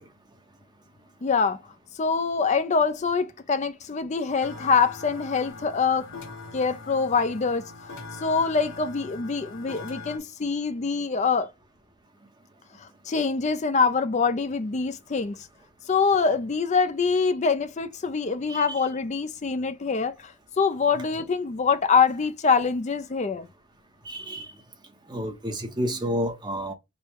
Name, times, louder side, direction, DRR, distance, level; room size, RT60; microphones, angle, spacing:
voice 1, 1.2-1.6 1.9-6.1 6.5-7.6 8.2-11.5 12.8-15.5 15.9-23.5, left 5 dB, 30° left, 0.4 m, -24 dB
sound 1, 4.4-10.2, left 3 dB, 65° left, 1.0 m, -42 dB
voice 2, 18.5-18.8 24.0-24.5 25.1-26.7, equal, 20° right, 0.8 m, -30 dB
5.2 x 2.2 x 4.4 m
head